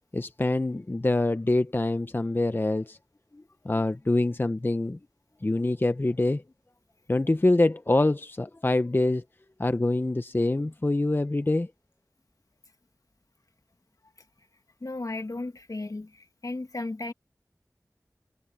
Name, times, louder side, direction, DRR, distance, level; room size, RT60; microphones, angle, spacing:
voice 1, 0.1-3.0 3.6-5.0 5.4-6.4 7.1-9.2 9.6-11.7, left 2 dB, 35° left, 0.6 m, -25 dB
voice 2, 14.8-17.1, left 2 dB, 65° left, 1.7 m, -35 dB
wide cardioid pair, 60°, 6 cm